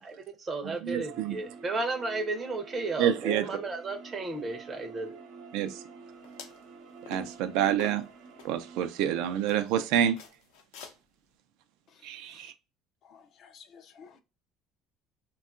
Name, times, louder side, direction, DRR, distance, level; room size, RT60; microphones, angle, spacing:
voice 1, 0.0-5.2, right 3 dB, 20° right, 0.5 m, -34 dB
voice 2, 0.8-1.4 3.0-3.5 5.5-5.8 7.1-8.0 8.4-10.2 12.0-12.5, right 10 dB, 75° right, 0.4 m, -28 dB
sound 1, 1.0-9.4, right 5 dB, 60° right, 0.9 m, -48 dB
sound 2, 6.2-6.6 7.1-7.4 7.8-8.5 9.0-9.1 9.5-9.8 10.2-10.9, left 7 dB, 90° left, 0.6 m, -47 dB
voice 3, 11.9-12.5 13.0-14.2, left 6 dB, 40° left, 0.4 m, -55 dB
3.6 x 2.2 x 2.4 m
cardioid pair, 175°, 0 cm